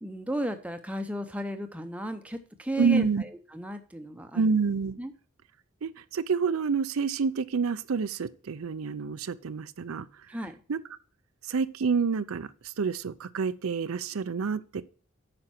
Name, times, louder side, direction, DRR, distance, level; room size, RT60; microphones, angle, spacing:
voice 1, 0.0-4.5 5.0-5.1 10.3-10.6, right 1 dB, 5° right, 0.7 m, -34 dB
voice 2, 2.8-3.2 4.3-5.0 5.8-10.1 10.7-10.8 11.5-12.5 12.8-14.9, right 5 dB, 85° right, 0.5 m, -28 dB
8.9 x 5.8 x 4.3 m
head